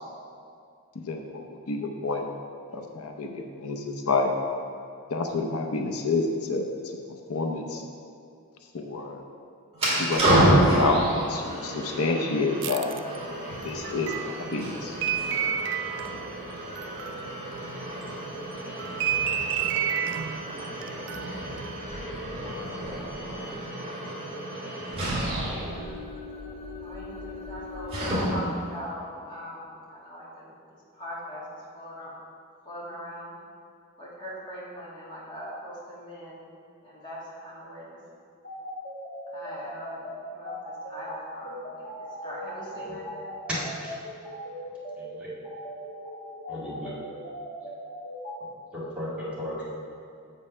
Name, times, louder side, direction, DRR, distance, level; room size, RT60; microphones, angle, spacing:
voice 1, 0.9-2.3 2.7-4.3 5.1-6.6 7.3-7.8 8.7-9.2 10.0-12.9 13.6-15.0, left 3 dB, 80° left, 2 dB, 0.7 m, -29 dB
sound 1, 9.7-28.6, right 1 dB, 30° right, 1.9 m, -29 dB
sound 2, 12.6-18.1 18.5-21.8, right 9 dB, 55° right, 0.3 m, -31 dB
voice 2, 26.8-32.1 32.6-33.4 34.0-36.5 36.8-38.0 39.3-40.0 40.3-41.9 42.2-43.3, equal, 20° left, -7 dB, 2.1 m, -41 dB
sound 3, 38.4-48.3, equal, 40° left, 1.9 m, -39 dB
voice 3, 45.0-45.3 46.5-46.9 48.4-49.6, left 1 dB, 5° right, -9 dB, 1.9 m, -36 dB
7.3 x 5.4 x 5.5 m, 2.4 s
head